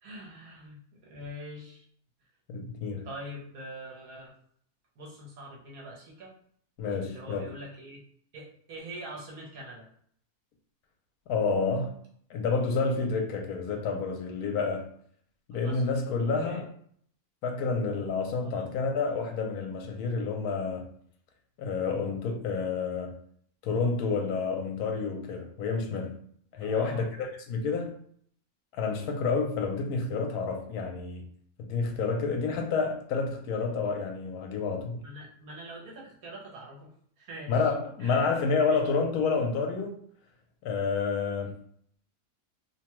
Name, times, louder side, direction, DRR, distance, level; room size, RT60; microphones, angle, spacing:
voice 1, 0.0-1.9 3.0-4.3 5.0-6.3 7.0-8.0 8.3-9.9 15.5-15.9 16.4-16.6 18.4-18.7 26.6-27.0 35.0-37.6 38.0-38.8, equal, 70° right, 1.3 m, -44 dB
voice 2, 2.5-3.1 6.8-7.5 11.3-12.0 12.3-14.9 15.5-16.7 17.4-20.9 21.6-23.2 23.6-26.2 26.5-28.0 28.7-31.2 31.6-35.0 37.5-40.0 40.6-41.6, left 4 dB, 80° left, 1.1 m, -29 dB
2.9 x 2.2 x 2.9 m
omnidirectional pair, 1.6 m